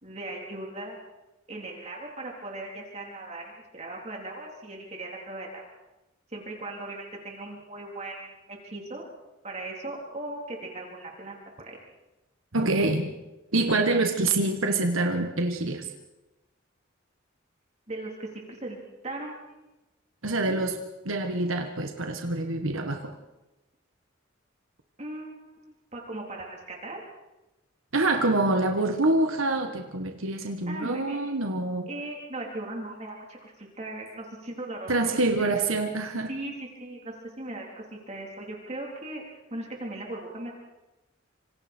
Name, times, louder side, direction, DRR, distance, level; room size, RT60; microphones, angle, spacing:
voice 1, 0.0-1.0 1.5-5.6 6.3-9.0 9.4-11.8 17.9-18.8 19.0-19.7 20.5-20.7 25.0-27.0 30.3-31.2 31.9-34.9 35.4-35.6 36.3-36.5 36.8-39.2 39.5-40.5, right 2 dB, 35° right, -1 dB, 3.9 m, -38 dB
voice 2, 12.5-13.1 13.5-15.9 20.2-23.1 27.9-31.9 34.9-36.3, right 2 dB, 85° right, 5 dB, 1.6 m, -26 dB
26.5 x 26.0 x 4.6 m, 0.99 s
head